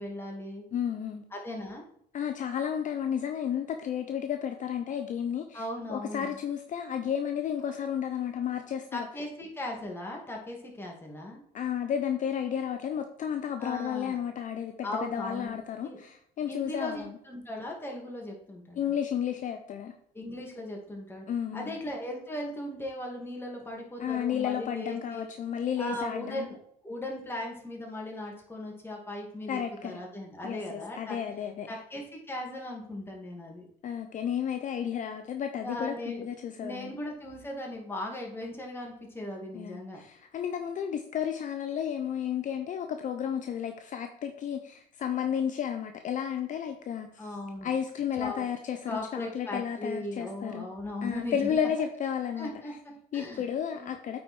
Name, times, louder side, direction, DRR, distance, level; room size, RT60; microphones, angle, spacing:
voice 1, 0.0-0.6 1.3-1.8 5.5-6.4 8.9-11.4 13.6-14.2 14.8-15.6 15.8-16.0 16.5-18.9 20.1-21.2 21.5-25.3 25.8-26.6 26.8-31.2 31.7-32.0 32.3-33.7 35.6-36.3 36.6-40.0 47.2-47.7 48.2-48.5 48.8-51.7 52.4-53.4 53.7-54.0, left 1 dB, 15° left, -1 dB, 2.4 m, -38 dB
voice 2, 0.7-1.2 2.1-5.6 5.9-9.1 11.5-17.1 18.8-19.9 21.3-21.8 24.0-26.5 29.5-30.0 30.4-31.8 33.8-36.9 39.5-47.3 47.6-50.7 51.0-52.5 53.1-54.2, left 8 dB, 50° left, 7 dB, 0.7 m, -32 dB
8.5 x 4.8 x 4.4 m, 0.69 s
cardioid pair, 110°, 17 cm